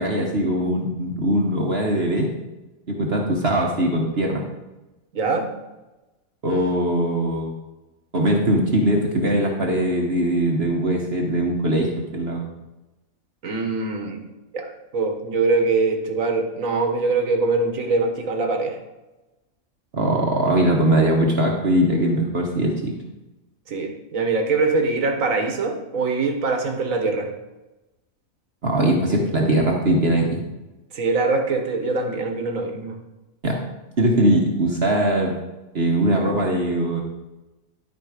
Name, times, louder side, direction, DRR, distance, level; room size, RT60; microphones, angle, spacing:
voice 1, 0.0-2.3 2.9-4.4 6.4-7.5 8.1-12.4 19.9-22.9 28.6-30.4 33.4-33.6 34.0-35.4 35.7-37.0, right 1 dB, 50° right, 0 dB, 1.3 m, -21 dB
voice 2, 5.1-5.5 13.4-14.2 14.5-14.7 14.9-18.8 23.7-27.3 30.9-33.0, right 3 dB, 75° right, 4 dB, 1.7 m, -23 dB
12.5 x 5.1 x 5.0 m, 1.1 s
omnidirectional pair, 1.4 m